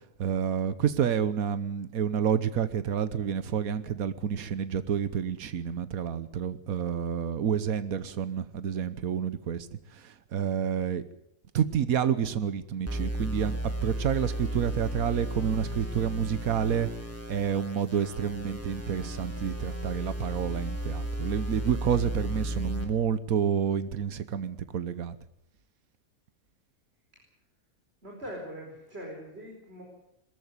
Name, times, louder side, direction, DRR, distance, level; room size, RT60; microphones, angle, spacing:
voice 1, 0.2-9.7 9.9-11.0 11.5-16.9 17.3-25.2, right 8 dB, 90° right, 14 dB, 1.5 m, -29 dB
sound 1, 12.9-22.9, right 1 dB, 10° right, 3.1 m, -34 dB
voice 2, 28.0-29.8, equal, 45° right, -1 dB, 5.0 m, -41 dB
22.5 x 14.0 x 9.6 m, 0.81 s
omnidirectional pair, 1.4 m